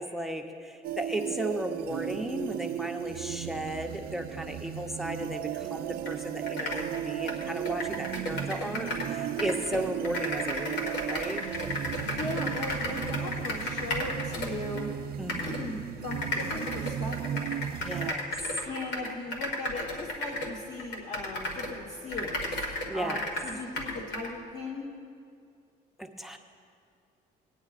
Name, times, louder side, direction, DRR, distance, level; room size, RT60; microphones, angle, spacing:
voice 1, 0.0-11.4 15.2-15.6 17.8-18.3 19.0-19.1 22.9-23.2 26.0-26.4, right 1 dB, ahead, 6 dB, 0.6 m, -35 dB
sound 1, 0.8-18.1, right 10 dB, 65° right, 0.4 m, -35 dB
sound 2, 6.1-6.2 6.4-9.1 9.4-14.8 15.3-15.6 16.1-21.8 22.1-24.3, left 1 dB, 80° left, 1.8 m, -34 dB
voice 2, 11.9-14.9 15.4-17.6 18.6-22.6 22.9-24.9, left 2 dB, 45° left, -2 dB, 1.3 m, -38 dB
19.5 x 9.6 x 2.5 m, 2.4 s
cardioid pair, 110°, 17 cm